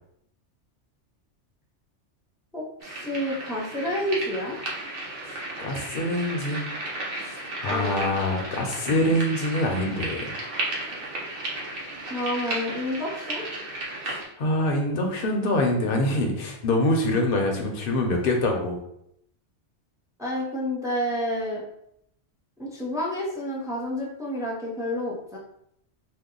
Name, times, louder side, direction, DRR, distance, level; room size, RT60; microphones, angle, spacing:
voice 1, 2.5-4.6 7.7-8.2 12.1-13.4 20.2-21.6 22.6-25.4, equal, 5° right, -5 dB, 0.5 m, -29 dB
sound 1, 2.8-14.2, right 2 dB, 55° right, 0.9 m, -34 dB
voice 2, 5.2-6.6 7.2-10.3 14.0-18.8, left 1 dB, 55° left, 1 dB, 0.8 m, -25 dB
2.7 x 2.2 x 3.7 m, 0.74 s
omnidirectional pair, 1.2 m